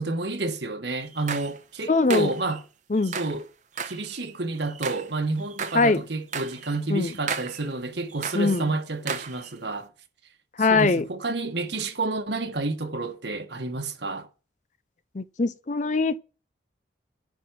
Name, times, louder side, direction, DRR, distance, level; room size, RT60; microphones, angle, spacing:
voice 1, 0.0-2.6 3.1-3.4 3.8-9.9 10.6-14.3, right 3 dB, 70° right, 1.7 m, -30 dB
sound 1, 1.0-1.6 2.1-2.6 3.0-3.4 3.8-5.1 5.4-5.9 6.3-6.8 7.1-7.7 8.1-8.6 9.1-9.5, right 6 dB, 40° right, 1.0 m, -35 dB
voice 2, 1.9-2.3 2.9-3.2 5.7-6.0 6.9-7.1 8.3-8.7 10.6-11.0 15.1-16.2, left 3 dB, 40° left, 0.6 m, -22 dB
11.0 x 4.2 x 7.6 m
head